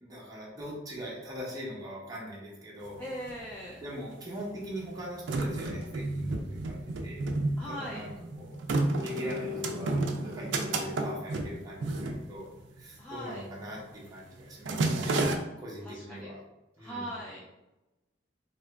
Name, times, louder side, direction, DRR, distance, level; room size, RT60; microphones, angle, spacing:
voice 1, 0.0-3.0 3.8-6.8 7.0-7.2 7.6-8.6 9.0-12.5 12.8-15.3 15.6-16.4 16.8-17.2, equal, 20° right, -5 dB, 0.7 m, -42 dB
sound 1, 2.9-3.0 3.1-3.9 4.6-12.9 13.2-13.5 13.8-14.1 14.4-15.4, right 2 dB, 80° right, 0.4 m, -31 dB
voice 2, 3.0-3.8 7.6-8.1 13.0-13.5 15.8-16.4 16.8-17.4, equal, 10° left, -7 dB, 0.4 m, -40 dB
2.8 x 2.4 x 3.3 m, 1.0 s
head